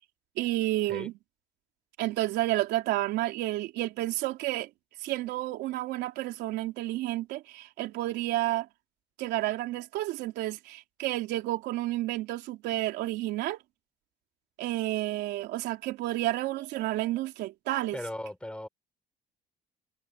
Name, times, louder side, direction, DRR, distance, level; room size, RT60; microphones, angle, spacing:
voice 1, 0.4-1.1 2.0-4.7 5.0-8.7 9.2-13.6 14.6-18.0, right 16 dB, 85° right, 3.5 m, -30 dB
voice 2, 17.9-18.7, left 1 dB, 5° left, 5.0 m, -37 dB
cardioid pair, 110°, 17 cm